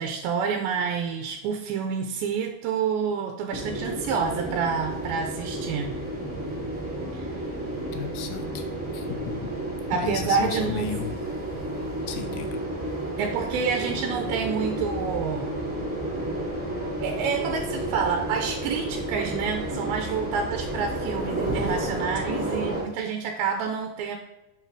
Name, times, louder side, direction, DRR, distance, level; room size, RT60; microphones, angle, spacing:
voice 1, 0.0-6.0 7.1-7.3 9.9-10.9 13.2-15.5 17.0-24.2, right 6 dB, 85° right, 4 dB, 2.5 m, -28 dB
sound 1, 3.5-22.8, right 1 dB, 10° right, 0.9 m, -31 dB
voice 2, 7.9-8.7 8.9-9.5 9.9-11.1 12.1-12.6 22.2-22.3, left 10 dB, 80° left, 6 dB, 2.5 m, -34 dB
6.2 x 5.8 x 4.7 m, 0.94 s
omnidirectional pair, 4.4 m